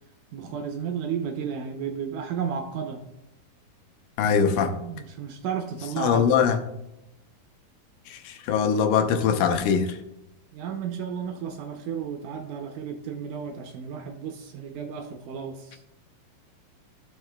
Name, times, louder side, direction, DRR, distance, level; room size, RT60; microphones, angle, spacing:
voice 1, 0.3-3.0 4.7-6.5 10.5-15.8, right 7 dB, 75° right, 4 dB, 2.0 m, -33 dB
voice 2, 4.2-4.8 6.0-6.6 8.1-10.0, left 7 dB, 80° left, 6 dB, 2.4 m, -22 dB
15.5 x 5.6 x 2.2 m, 0.89 s
omnidirectional pair, 4.2 m